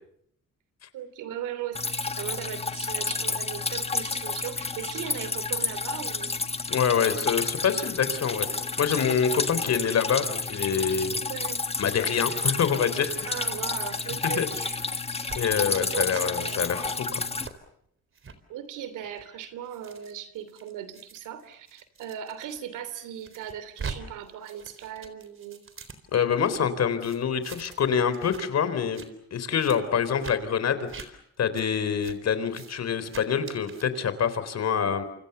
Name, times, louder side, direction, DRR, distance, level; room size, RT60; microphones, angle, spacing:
voice 1, 0.9-6.6 9.7-9.8 11.2-11.6 13.2-14.8 15.2-15.4 15.8-16.8 18.5-25.6 29.9-30.3, right 10 dB, 90° right, 13 dB, 3.1 m, -38 dB
Drip, 1.7-17.5, left 3 dB, 20° left, 1.7 m, -31 dB
voice 2, 6.7-11.2 11.8-13.3 14.2-14.5 15.4-17.3 26.1-29.0 29.3-31.1 31.4-35.0, left 7 dB, 60° left, 12 dB, 4.0 m, -26 dB
sound 1, 15.2-15.8 16.1-16.2 16.6-16.9 17.4-17.6 18.1-18.4 19.0-22.6 23.0-24.0 24.2-26.6 27.0-27.9 28.1-28.4 28.8-29.1 29.6-29.8 30.2-30.4 30.9-31.1 31.5-31.6 32.0-32.2 32.5-32.7 33.1-33.8, right 5 dB, 45° right, 4.0 m, -43 dB
28.5 x 26.0 x 6.9 m, 0.71 s
cardioid pair, 90°, 30 cm